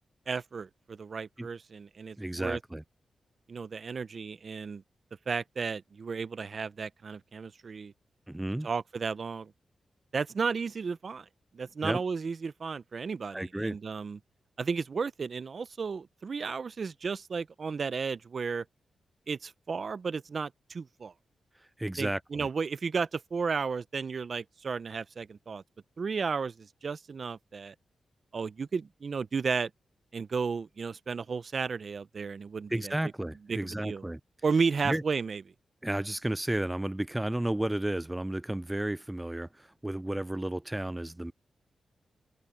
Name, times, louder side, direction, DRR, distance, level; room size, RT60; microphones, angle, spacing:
voice 1, 0.3-2.6 3.5-4.8 5.3-7.9 8.6-9.5 10.1-11.3 11.5-14.2 14.6-18.6 19.3-21.1 22.0-25.6 26.0-27.7 28.3-29.7 30.1-32.9 33.5-34.0 34.4-35.4, right 5 dB, 55° right, 0.7 m, -33 dB
voice 2, 2.2-2.8 8.3-8.7 11.8-12.0 13.3-13.8 21.8-22.5 32.7-34.2 34.8-35.0 35.8-41.3, right 1 dB, 15° right, 0.5 m, -32 dB
open air
cardioid pair, 65°, 0 cm